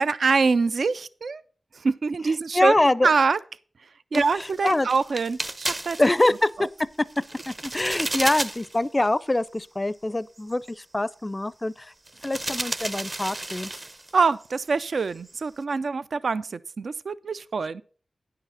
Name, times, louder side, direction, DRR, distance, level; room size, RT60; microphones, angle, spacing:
voice 1, 0.0-1.4 1.7-2.7 3.0-3.4 4.1-6.0 6.6-6.7 14.1-17.8, right 4 dB, 70° right, 0.3 m, -24 dB
voice 2, 2.5-3.1 4.1-4.9 6.0-6.7 7.5-11.9 12.2-13.7, left 2 dB, 25° left, 0.4 m, -24 dB
sound 1, 4.1-6.5 7.0-8.8 9.1-9.2 9.6-9.7 10.4-10.7 12.1-14.2 14.4-14.7 15.0-15.4, right 2 dB, 35° right, 0.7 m, -33 dB
9.8 x 5.7 x 5.5 m
cardioid pair, 45°, 0 cm